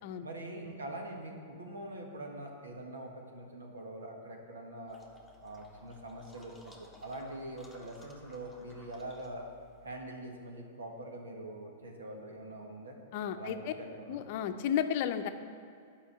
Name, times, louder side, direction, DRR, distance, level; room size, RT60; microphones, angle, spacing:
voice 1, 0.2-5.0 5.4-9.4 9.8-13.0 13.3-14.2, right 1 dB, 90° right, 1 dB, 1.6 m, -44 dB
sound 1, 4.9-10.0, left 3 dB, 5° right, 1.3 m, -57 dB
voice 2, 13.1-13.7 14.1-15.3, left 9 dB, 55° left, 9 dB, 0.6 m, -33 dB
9.9 x 5.6 x 6.9 m, 2.4 s
hypercardioid pair, 115°, 0 cm